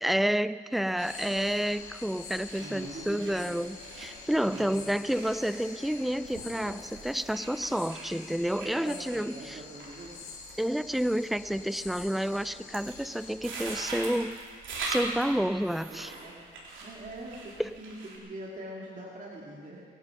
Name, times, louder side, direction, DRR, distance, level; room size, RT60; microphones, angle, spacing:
voice 1, 0.0-9.6 10.6-14.3 14.9-16.1, equal, ahead, 15 dB, 0.4 m, -30 dB
sound 1, 0.7-18.2, right 3 dB, 70° right, 3.7 m, -43 dB
sound 2, 1.0-13.4, left 5 dB, 85° left, 3.0 m, -46 dB
voice 2, 2.6-3.7 4.4-4.8 8.6-10.2 15.9-16.5 16.8-19.8, right 2 dB, 40° right, -3 dB, 2.4 m, -43 dB
22.0 x 11.0 x 5.9 m, 2.1 s
cardioid pair, 95°, 21 cm